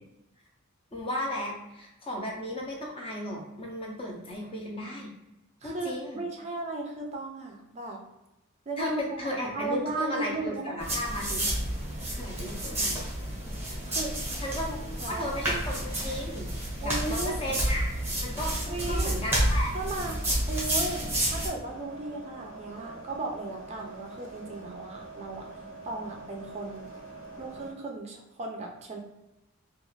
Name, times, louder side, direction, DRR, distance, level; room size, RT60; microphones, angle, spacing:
voice 1, 0.9-5.1 5.6-6.2 8.8-11.5 12.1-13.1 14.4-14.8 15.1-16.5 16.8-17.9 18.2-19.7, left 1 dB, 25° left, -1 dB, 0.6 m, -35 dB
voice 2, 5.6-8.0 8.7-10.7 13.9-14.5 15.0-15.3 16.8-17.4 18.7-19.1 19.7-20.2 20.5-25.5 25.8-26.9 27.4-29.0, right 2 dB, 30° right, 0 dB, 0.4 m, -36 dB
sound 1, 10.8-21.5, right 1 dB, 10° right, 0.9 m, -30 dB
sound 2, 21.6-27.7, right 2 dB, 80° left, 1.1 m, -45 dB
2.4 x 2.3 x 3.0 m, 0.97 s
head